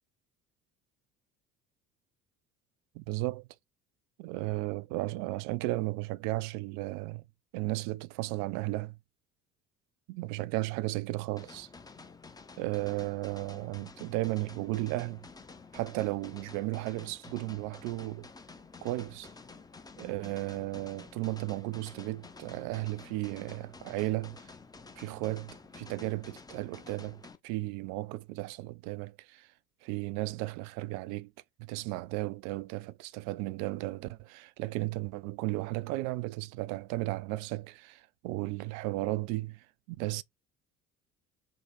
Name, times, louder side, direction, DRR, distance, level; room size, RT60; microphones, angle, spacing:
voice 1, 2.9-3.5 4.2-7.3 7.5-9.0 10.1-11.7 12.6-15.3 15.7-18.3 18.8-19.3 20.0-24.5 25.0-29.5 29.8-31.3 31.6-40.2, right 19 dB, 45° right, 0.4 m, -35 dB
sound 1, 11.4-27.4, left 4 dB, 10° left, 0.6 m, -51 dB
3.7 x 2.8 x 3.8 m
figure-of-eight pair, 55°, 42 cm